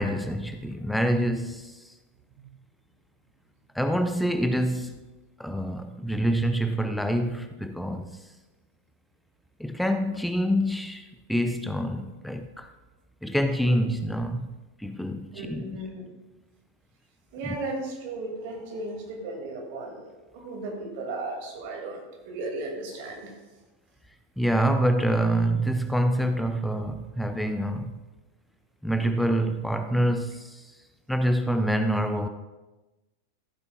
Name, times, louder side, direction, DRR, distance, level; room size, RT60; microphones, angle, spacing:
voice 1, 0.0-1.7 3.7-5.0 5.4-8.2 9.6-12.7 13.2-15.8 24.4-28.0 28.8-30.6 31.1-32.3, right 1 dB, ahead, 0.5 m, -26 dB
voice 2, 15.3-16.0 17.3-23.3, right 2 dB, 50° right, 2.5 m, -35 dB
14.5 x 9.6 x 2.4 m
figure-of-eight pair, 90°, 0 cm